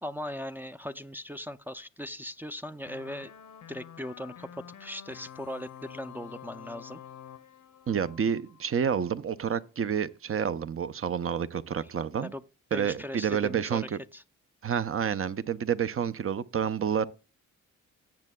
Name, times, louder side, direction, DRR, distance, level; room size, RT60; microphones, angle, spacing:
voice 1, 0.0-3.3 3.7-7.0 12.2-12.4 12.7-14.2, left 1 dB, 5° right, 0.5 m, -39 dB
sound 1, 2.9-9.0, left 9 dB, 60° left, 0.8 m, -48 dB
voice 2, 7.9-12.3 12.7-14.0 14.6-17.1, right 7 dB, 40° right, 0.6 m, -29 dB
17.5 x 7.4 x 2.3 m
supercardioid pair, 55°, 33 cm